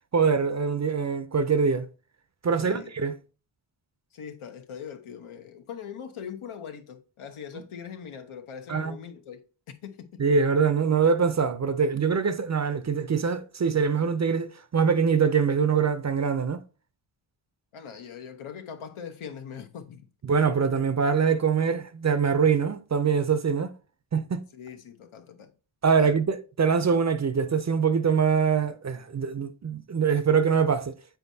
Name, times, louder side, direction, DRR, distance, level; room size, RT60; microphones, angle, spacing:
voice 1, 0.1-1.9 2.4-3.1 8.7-9.0 10.2-16.6 20.3-23.7 24.1-24.4 25.8-30.9, right 6 dB, 35° right, 0.5 m, -24 dB
voice 2, 2.6-2.9 4.1-9.4 9.8-10.2 17.7-20.1 24.5-25.5 26.0-26.2, left 7 dB, 85° left, 0.9 m, -41 dB
7.9 x 4.5 x 2.7 m
wide cardioid pair, 105°, 49 cm